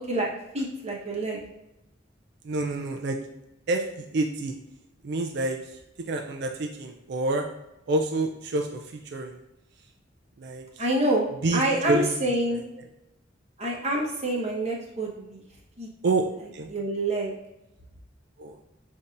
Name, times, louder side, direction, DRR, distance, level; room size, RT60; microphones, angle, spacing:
voice 1, 0.1-1.4 10.8-11.3 11.5-12.6 13.6-15.4 15.8-15.9 16.7-17.3, right 1 dB, 35° right, -3 dB, 1.1 m, -27 dB
voice 2, 2.4-3.2 3.7-4.5 5.0-5.8 6.1-7.5 7.9-9.4 10.4-10.8 11.4-12.4 16.0-16.7 18.4-18.6, right 2 dB, 60° right, 3 dB, 0.4 m, -28 dB
7.0 x 2.7 x 2.5 m, 0.94 s
head